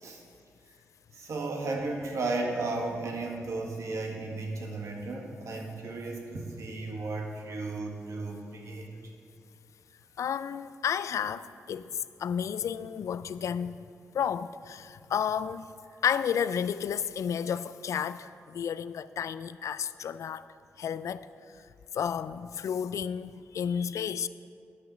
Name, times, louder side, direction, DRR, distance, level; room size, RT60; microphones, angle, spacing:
voice 1, 1.1-8.9, right 2 dB, 70° right, 1.7 m, -34 dB
voice 2, 10.2-11.9 12.2-13.8 14.1-15.7 16.0-20.5 20.8-21.3 21.9-24.3, left 8 dB, 70° left, 0.4 m, -31 dB
10.5 x 5.7 x 7.4 m
cardioid pair, 55°, 5 cm